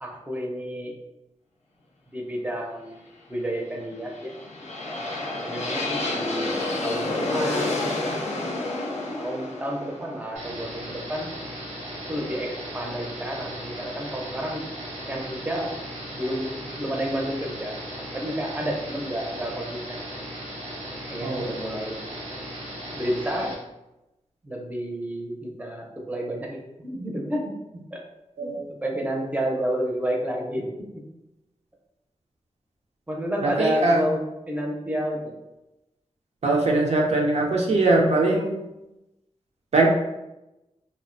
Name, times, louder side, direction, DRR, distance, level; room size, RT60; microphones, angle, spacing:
voice 1, 0.0-0.9 2.1-4.3 5.4-7.9 9.0-11.3 12.1-14.6 15.1-15.7 16.1-17.8 18.1-20.0 21.1-22.0 22.9-23.5 24.4-27.4 27.9-28.0 28.4-30.7 33.1-34.2 34.5-35.3, equal, 15° right, 0 dB, 0.5 m, -30 dB
sound 1, 4.0-11.9, left 2 dB, 70° left, 0.5 m, -30 dB
sound 2, 10.4-23.6, equal, 85° right, 0.9 m, -37 dB
voice 2, 33.4-34.0 36.4-38.6 39.7-39.9, right 2 dB, 65° right, -1 dB, 0.4 m, -21 dB
2.4 x 2.0 x 2.5 m, 0.95 s
cardioid pair, 50°, 12 cm